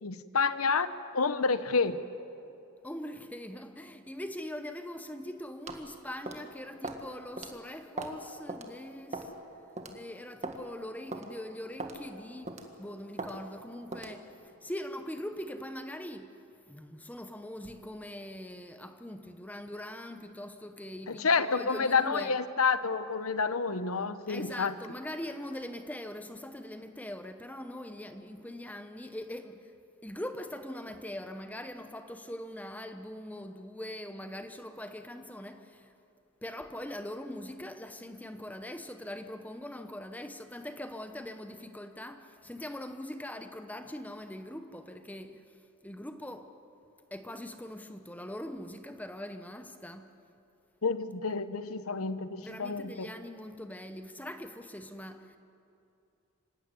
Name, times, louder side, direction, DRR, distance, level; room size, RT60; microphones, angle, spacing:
voice 1, 0.0-2.0 21.1-24.7 50.8-53.1, left 4 dB, 85° left, 0.9 m, -29 dB
voice 2, 2.8-9.3 9.9-16.4 16.7-22.3 24.3-29.7 30.0-35.9 36.4-46.5 47.1-50.1 52.4-55.4, left 1 dB, 5° left, 0.8 m, -42 dB
sound 1, 5.7-5.9 6.3-6.5 6.8-7.0 7.4-7.5 8.0-8.2 8.5-8.7 9.1-9.4 9.8-9.9 10.4-10.6 11.1-11.3 11.8-12.0 12.5-12.7 13.2-13.3 13.9-14.2, right 2 dB, 30° right, 1.7 m, -38 dB
26.0 x 16.0 x 9.7 m
head